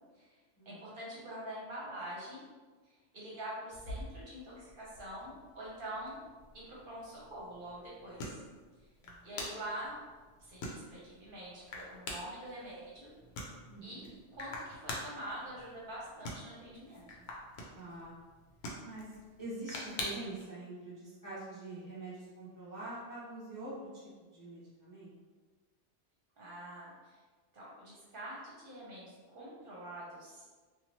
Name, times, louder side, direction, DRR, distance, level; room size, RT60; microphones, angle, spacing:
voice 1, 0.7-2.4 2.8-6.2 6.5-8.4 9.2-10.0 10.4-13.1 13.8-14.1 14.3-17.2 26.4-27.2 27.5-30.4, right 1 dB, 55° right, -6 dB, 0.9 m, -45 dB
sound 1, 3.7-20.4, left 1 dB, 70° left, 0.8 m, -46 dB
voice 2, 13.7-14.1 17.7-18.1 18.8-24.0 24.3-25.1, right 2 dB, 20° left, -10 dB, 0.6 m, -45 dB
2.8 x 2.3 x 2.9 m, 1.4 s
omnidirectional pair, 1.2 m